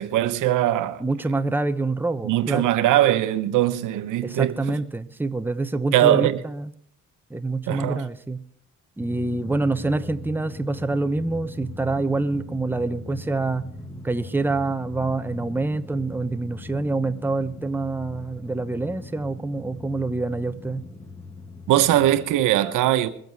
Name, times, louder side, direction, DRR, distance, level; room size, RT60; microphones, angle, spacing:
voice 1, 0.0-1.0 2.2-4.8 5.9-6.4 7.7-8.0 21.7-23.1, right 13 dB, 80° right, 1.0 m, -21 dB
voice 2, 1.0-2.7 4.2-6.7 7.3-8.4 9.0-13.6 14.0-20.8, right 2 dB, 5° right, 0.9 m, -26 dB
Drum, 9.0-22.4, left 2 dB, 10° left, 1.3 m, -40 dB
22.0 x 8.0 x 4.6 m
cardioid pair, 80°, 31 cm